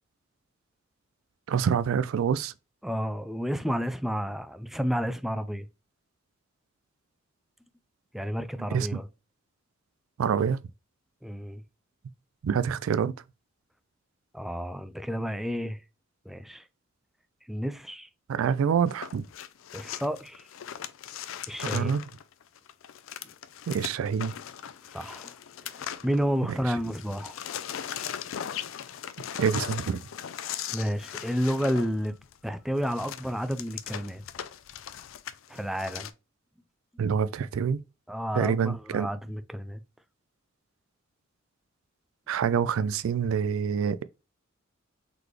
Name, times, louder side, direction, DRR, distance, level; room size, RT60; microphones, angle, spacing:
voice 1, 1.5-2.5 8.7-8.9 10.2-10.6 12.4-13.1 18.3-19.3 21.7-22.0 23.7-24.3 29.4-30.0 37.0-37.8 38.4-39.1 42.3-44.0, right 7 dB, 85° right, 0.3 m, -26 dB
voice 2, 2.8-5.7 8.1-9.1 11.2-11.6 14.3-15.8 16.3-16.7 17.5-18.1 19.7-20.5 21.5-22.0 24.9-27.4 30.7-32.2 32.4-34.2 35.5-36.1 38.1-39.8, equal, ahead, 0.3 m, -31 dB
sound 1, 18.9-26.6 26.8-36.1, left 9 dB, 70° left, 0.4 m, -39 dB
4.0 x 3.3 x 3.0 m
head